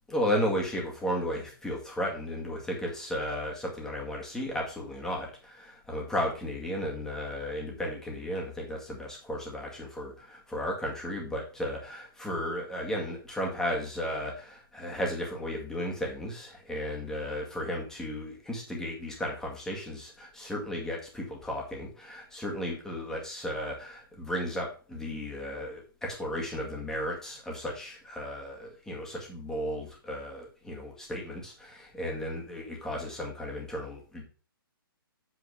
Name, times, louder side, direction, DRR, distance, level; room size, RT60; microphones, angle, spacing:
voice 1, 0.1-34.2, equal, 5° left, -1 dB, 2.1 m, -34 dB
8.2 x 4.5 x 5.0 m, 0.37 s
hypercardioid pair, 140°, 12 cm